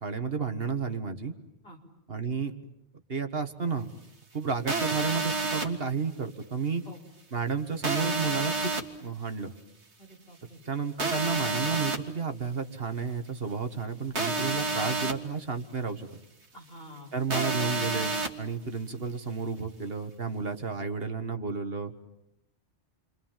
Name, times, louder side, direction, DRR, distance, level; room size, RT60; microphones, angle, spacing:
voice 1, 0.0-1.3 2.1-2.5 3.1-3.9 4.3-6.8 7.3-8.7 9.0-9.5 10.7-16.1 17.1-21.9, right 5 dB, 60° right, 7 dB, 1.9 m, -32 dB
sound 1, 4.7-5.7 7.8-8.8 11.0-12.0 14.1-15.1 17.3-18.3, right 3 dB, 85° right, 2.1 m, -29 dB
voice 2, 10.0-10.6 16.5-17.1, equal, 60° left, -1 dB, 5.2 m, -48 dB
29.5 x 25.0 x 7.4 m, 0.83 s
omnidirectional pair, 1.1 m